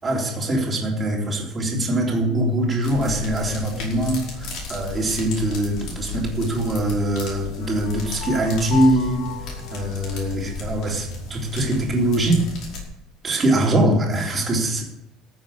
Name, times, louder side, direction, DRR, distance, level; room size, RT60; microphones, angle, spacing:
voice 1, 0.0-9.3 9.7-12.4 13.2-14.8, right 1 dB, 20° right, -2 dB, 3.4 m, -22 dB
sound 1, 2.8-12.8, left 3 dB, 50° left, 5.1 m, -35 dB
sound 2, 7.6-11.6, left 8 dB, 85° left, 1.8 m, -36 dB
13.5 x 7.2 x 8.5 m, 0.81 s
cardioid pair, 165°, 0 cm